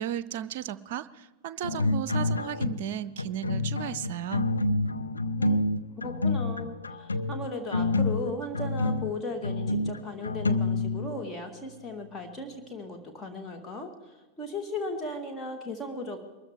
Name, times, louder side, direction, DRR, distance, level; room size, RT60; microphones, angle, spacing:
voice 1, 0.0-4.5, right 10 dB, 50° right, 15 dB, 0.6 m, -35 dB
sound 1, 1.6-2.9 3.2-11.3, left 2 dB, 80° left, 0.6 m, -28 dB
voice 2, 5.4-5.7 6.0-16.2, left 2 dB, 20° left, 4 dB, 1.8 m, -37 dB
22.5 x 14.0 x 3.7 m, 1.2 s
figure-of-eight pair, 90°, 0 cm